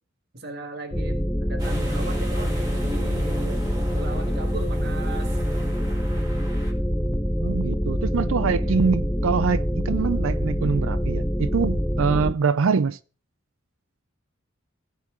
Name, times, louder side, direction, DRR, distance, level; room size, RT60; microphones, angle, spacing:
voice 1, 0.3-3.7 3.9-5.4 8.6-8.8, right 2 dB, 50° right, 1.6 m, -38 dB
sound 1, 0.9-12.3, equal, 5° left, 0.6 m, -25 dB
sound 2, 1.6-6.7, right 1 dB, 20° right, 2.6 m, -37 dB
voice 2, 7.4-13.0, right 5 dB, 70° right, 0.4 m, -24 dB
17.0 x 5.8 x 3.6 m
head